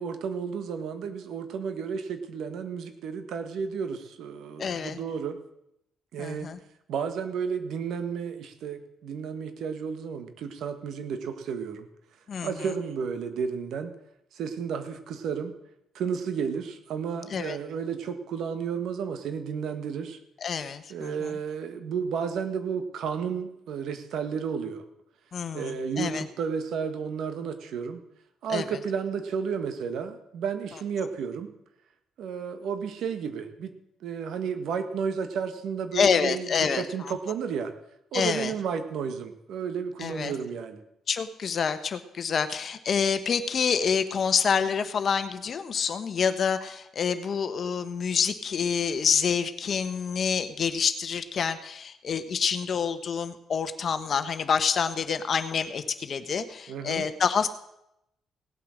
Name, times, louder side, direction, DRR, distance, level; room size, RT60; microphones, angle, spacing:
voice 1, 0.0-5.4 6.1-6.5 6.9-11.9 12.4-13.9 14.3-15.5 15.9-20.2 20.9-24.8 25.5-28.0 28.4-31.5 32.2-33.7 34.0-37.7 38.1-40.8 56.7-57.1, right 6 dB, 75° right, 9 dB, 1.5 m, -32 dB
voice 2, 4.6-5.0 6.2-6.6 12.3-12.5 17.3-17.6 20.4-21.3 25.3-26.2 28.5-28.6 35.9-36.8 38.1-38.5 40.0-40.3 41.1-57.5, left 6 dB, 50° left, 10 dB, 1.1 m, -27 dB
17.5 x 8.3 x 6.4 m, 0.82 s
cardioid pair, 90°, 0 cm